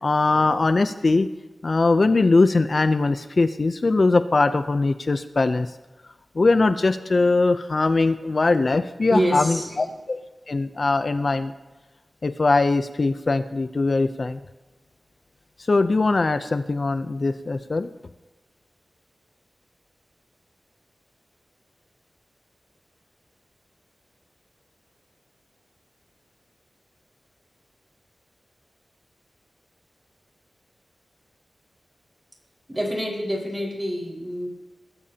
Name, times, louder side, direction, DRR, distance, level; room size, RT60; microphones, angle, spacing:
voice 1, 0.0-1.3 1.6-5.7 6.4-10.2 10.5-11.5 12.2-14.4 15.7-17.9, left 3 dB, 50° left, 10 dB, 0.5 m, -21 dB
voice 2, 9.1-9.9 32.7-34.5, equal, 20° right, -1 dB, 4.8 m, -27 dB
21.0 x 13.5 x 2.9 m, 1.1 s
wide cardioid pair, 70°, 0 cm